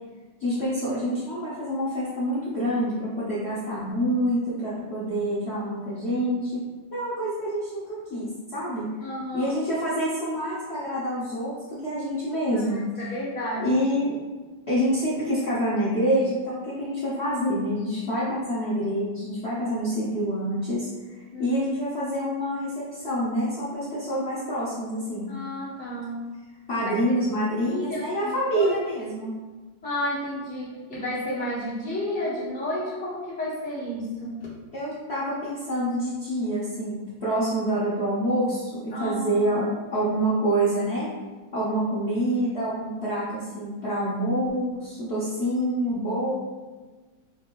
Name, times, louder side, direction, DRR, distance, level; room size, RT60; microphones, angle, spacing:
voice 1, 0.4-6.6 6.9-8.9 9.3-13.2 13.6-14.1 14.7-25.3 26.7-29.3 34.7-37.0 37.2-39.6 39.9-41.1 41.5-46.4, equal, 60° left, -10 dB, 0.7 m, -27 dB
voice 2, 9.0-9.5 12.5-13.8 21.3-21.5 25.3-26.4 26.7-27.2 27.6-28.7 29.8-34.5 38.9-39.6, left 1 dB, 10° left, -7 dB, 0.3 m, -32 dB
4.5 x 2.5 x 2.9 m, 1.3 s
omnidirectional pair, 2.1 m